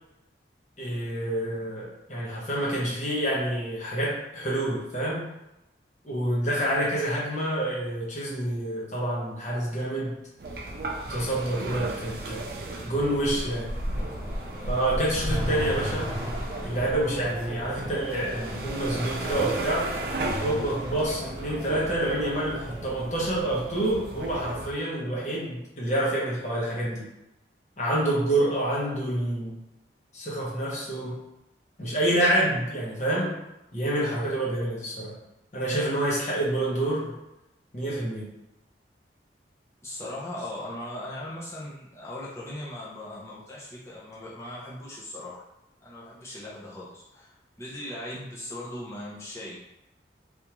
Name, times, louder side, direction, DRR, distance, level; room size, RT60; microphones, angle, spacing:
voice 1, 0.8-5.3 6.0-10.2 11.1-12.4 12.7-13.7 14.7-16.1 16.6-19.9 20.2-27.1 27.8-29.6 30.1-31.2 31.8-33.3 33.7-35.1 35.5-37.1 37.7-38.3, right 1 dB, 40° left, -5 dB, 1.0 m, -27 dB
sound 1, 10.4-24.7, right 1 dB, 55° right, 0.4 m, -34 dB
sound 2, 13.9-23.0, equal, 25° right, 1.2 m, -38 dB
voice 2, 39.8-45.4 45.8-49.6, left 1 dB, 15° left, -7 dB, 0.6 m, -39 dB
3.5 x 2.6 x 2.9 m, 0.92 s
head